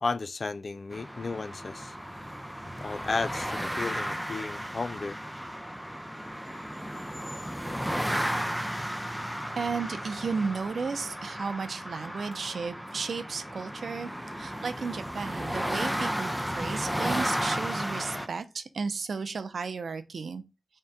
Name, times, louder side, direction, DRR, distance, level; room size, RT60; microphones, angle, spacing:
voice 1, 0.0-2.0 2.8-5.2, left 3 dB, 55° left, 0.3 m, -33 dB
sound 1, 0.9-18.3, equal, 5° right, 0.5 m, -34 dB
voice 2, 9.5-14.1 14.4-20.4, right 5 dB, 75° right, 0.5 m, -34 dB
3.6 x 2.2 x 4.0 m
cardioid pair, 55°, 0 cm